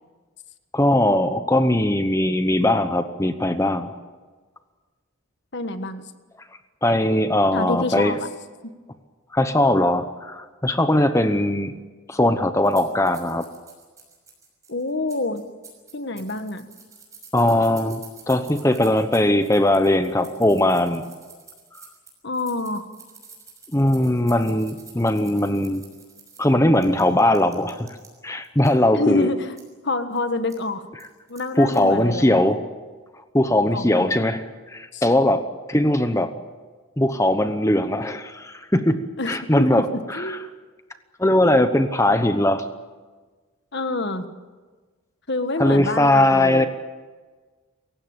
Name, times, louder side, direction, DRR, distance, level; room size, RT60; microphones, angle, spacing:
voice 1, 0.7-3.9 6.8-8.1 9.3-11.7 12.1-13.4 17.3-21.0 23.7-25.8 26.4-27.9 28.2-29.3 31.6-32.6 33.3-36.3 37.0-40.4 41.2-42.7 45.6-46.6, left 1 dB, 15° left, 9 dB, 0.9 m, -20 dB
voice 2, 5.5-6.0 7.5-8.3 8.6-8.7 14.7-15.4 15.9-16.7 22.2-22.8 28.9-29.5 29.8-30.8 31.3-32.4 33.7-34.1 34.9-35.0 39.2-40.5 43.7-44.3 45.3-46.7, left 2 dB, 50° left, 9 dB, 1.5 m, -27 dB
sound 1, 12.6-28.1 28.4-28.7 29.2-29.3 29.6-29.7 30.1-30.2 30.5-30.6 31.0-32.0, right 5 dB, 15° right, 6.0 m, -47 dB
28.5 x 16.0 x 8.9 m, 1.4 s
head